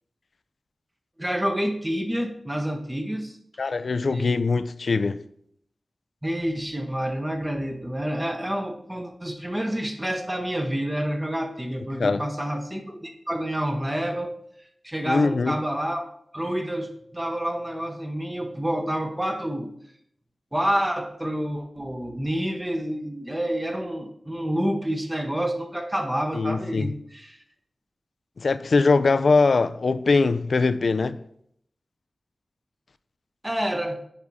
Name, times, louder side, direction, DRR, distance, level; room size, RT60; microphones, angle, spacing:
voice 1, 1.2-3.4 4.1-4.3 6.2-14.3 14.6-19.7 20.5-27.4 33.4-34.0, equal, 10° right, 0.7 m, -28 dB
voice 2, 3.6-5.2 12.0-12.2 15.0-15.6 26.3-26.9 28.4-31.2, left 4 dB, 65° left, 0.3 m, -22 dB
9.8 x 3.5 x 4.0 m
wide cardioid pair, 90°, 0 cm